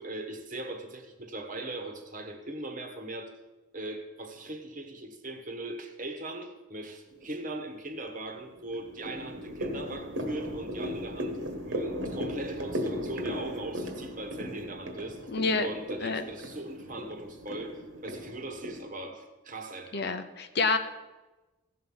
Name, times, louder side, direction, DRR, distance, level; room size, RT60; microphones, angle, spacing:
voice 1, 0.0-3.3 3.7-11.4 11.6-15.3 15.6-20.1, right 2 dB, 40° right, 5 dB, 1.3 m, -40 dB
sound 1, 7.1-7.6 8.1-18.8, equal, 65° right, 1.5 m, -37 dB
voice 2, 15.3-15.7 16.0-16.2 19.9-20.8, left 4 dB, 50° left, 9 dB, 0.7 m, -28 dB
16.0 x 6.5 x 5.6 m, 1.1 s
head